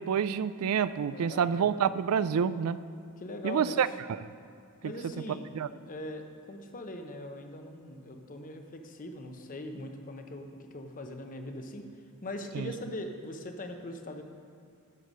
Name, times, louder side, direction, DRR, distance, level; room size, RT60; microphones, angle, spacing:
voice 1, 0.0-2.8 3.4-3.9 4.8-4.9 5.5-5.7 12.5-12.7, right 7 dB, 70° right, 15 dB, 0.4 m, -28 dB
voice 2, 1.1-1.7 3.2-3.8 4.8-5.5 5.9-11.8 12.2-14.2, left 1 dB, 35° left, 5 dB, 0.8 m, -41 dB
12.0 x 6.7 x 5.4 m, 2.3 s
head